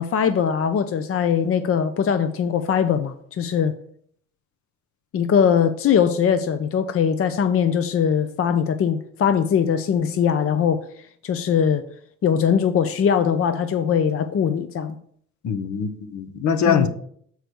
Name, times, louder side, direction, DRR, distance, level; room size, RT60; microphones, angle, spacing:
voice 1, 0.0-3.7 5.1-10.8 11.2-11.8 12.2-15.0 16.7-16.9, left 7 dB, 50° left, 0.6 m, -21 dB
voice 2, 15.4-16.9, left 7 dB, 70° left, 1.0 m, -22 dB
6.7 x 4.7 x 6.2 m
cardioid pair, 90°, 30 cm